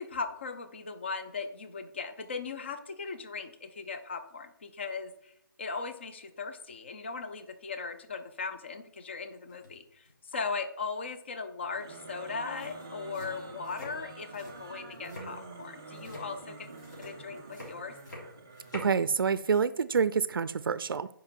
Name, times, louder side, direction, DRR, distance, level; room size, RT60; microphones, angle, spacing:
voice 1, 0.0-5.3 5.6-16.7 17.0-17.9, left 4 dB, 30° left, 9 dB, 0.6 m, -38 dB
sound 1, 9.5-9.8 10.0-10.4 12.1-12.2 12.4-19.0, left 1 dB, 55° left, 3.4 m, -47 dB
sound 2, 11.6-18.9, right 3 dB, 10° right, 0.3 m, -47 dB
voice 2, 18.7-21.1, right 6 dB, 75° right, 16 dB, 0.4 m, -27 dB
8.8 x 5.1 x 4.5 m, 0.74 s
hypercardioid pair, 175°, 12 cm